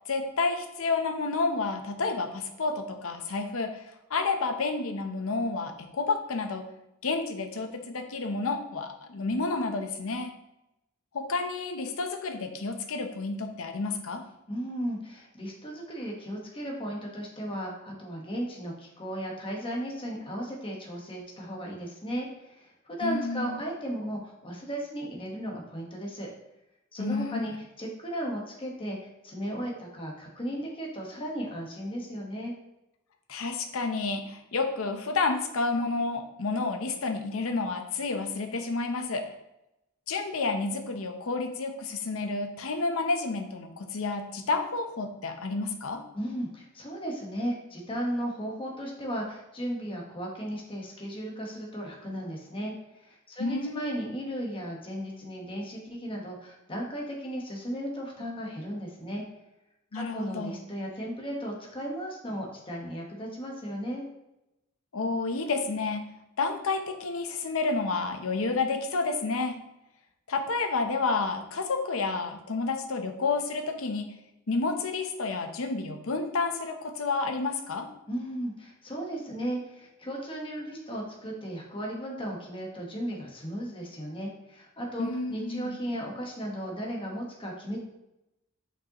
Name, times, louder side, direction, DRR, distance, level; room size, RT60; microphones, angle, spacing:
voice 1, 0.1-3.8 4.1-6.7 7.0-10.3 11.1-14.2 23.0-23.6 27.0-27.4 33.3-39.3 40.1-46.0 53.4-54.1 59.9-60.6 64.9-66.1 66.4-69.6 70.3-74.1 74.5-77.9 85.0-85.8, left 3 dB, 70° left, 6 dB, 0.7 m, -30 dB
voice 2, 14.5-26.3 26.9-32.5 46.1-52.7 53.0-59.2 59.9-64.0 78.1-87.8, equal, 25° left, -2 dB, 1.2 m, -35 dB
6.3 x 5.4 x 2.9 m, 0.90 s
head